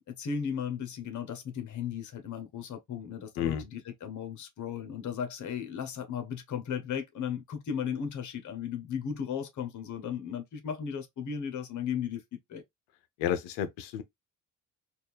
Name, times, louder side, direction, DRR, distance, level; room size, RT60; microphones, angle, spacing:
voice 1, 0.0-12.2 12.5-12.6, left 7 dB, 40° left, 1.2 m, -36 dB
voice 2, 13.2-14.0, left 9 dB, 65° left, 0.7 m, -31 dB
4.2 x 2.6 x 3.4 m
hypercardioid pair, 50°, 43 cm